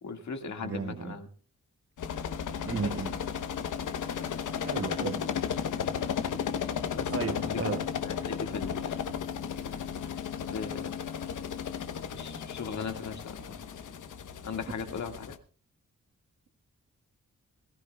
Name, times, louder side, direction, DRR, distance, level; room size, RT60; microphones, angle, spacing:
voice 1, 0.0-1.3 2.8-2.9 6.9-7.6 8.0-9.0 10.5-11.0 12.1-13.6 14.4-15.3, left 5 dB, 65° left, 1.9 m, -38 dB
voice 2, 0.6-1.2 2.5-3.2 4.6-5.3 7.1-7.9, right 5 dB, 50° right, 1.6 m, -34 dB
sound 1, 2.0-15.4, left 8 dB, 85° left, 1.0 m, -34 dB
22.0 x 15.0 x 2.3 m
wide cardioid pair, 125°, 30 cm